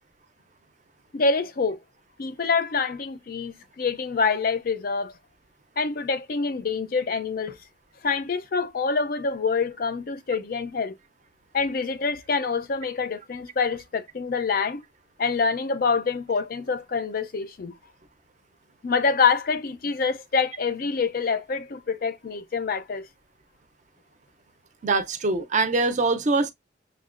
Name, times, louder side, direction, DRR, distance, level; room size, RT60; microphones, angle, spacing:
voice 1, 1.1-1.8 2.2-5.1 5.8-7.6 8.0-11.0 11.5-14.8 15.2-17.7 18.8-23.1, left 5 dB, 45° left, 0.4 m, -26 dB
voice 2, 24.8-26.5, right 3 dB, 40° right, 0.5 m, -23 dB
6.3 x 2.2 x 2.4 m
head